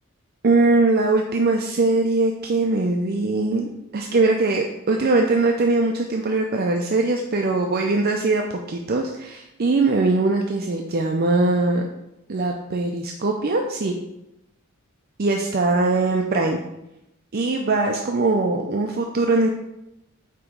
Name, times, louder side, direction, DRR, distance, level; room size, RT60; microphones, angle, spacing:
voice 1, 0.4-8.4 8.7-11.9 12.3-13.9 15.2-16.6 17.3-19.5, right 3 dB, 45° right, 2 dB, 0.5 m, -21 dB
8.1 x 3.0 x 5.0 m, 0.87 s
head